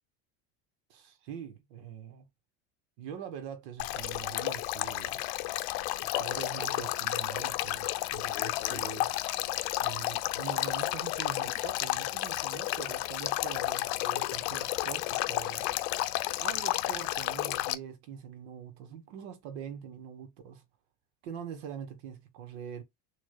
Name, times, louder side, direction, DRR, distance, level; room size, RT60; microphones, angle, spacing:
voice 1, 0.9-2.3 3.0-5.3 6.0-9.1 9.8-15.8 16.4-20.6 21.2-22.8, right 8 dB, 75° right, 1.5 m, -43 dB
Male speech man speaking / Stream / Trickle dribble, 3.8-17.7, left 17 dB, 75° left, 0.6 m, -32 dB
6.7 x 2.8 x 2.2 m
cardioid pair, 160°, 33 cm